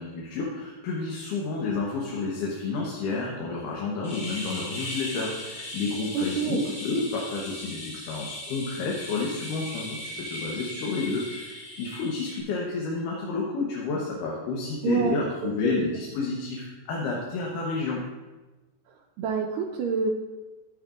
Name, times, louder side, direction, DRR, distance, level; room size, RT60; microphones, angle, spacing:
voice 1, 0.0-18.0, left 3 dB, 70° left, -3 dB, 2.5 m, -30 dB
sound 1, 4.0-12.4, left 1 dB, 25° left, 2.5 m, -38 dB
voice 2, 6.1-6.6 14.8-15.8 19.2-20.1, right 5 dB, 80° right, 1 dB, 2.1 m, -28 dB
11.5 x 11.0 x 2.5 m, 1.2 s
omnidirectional pair, 4.1 m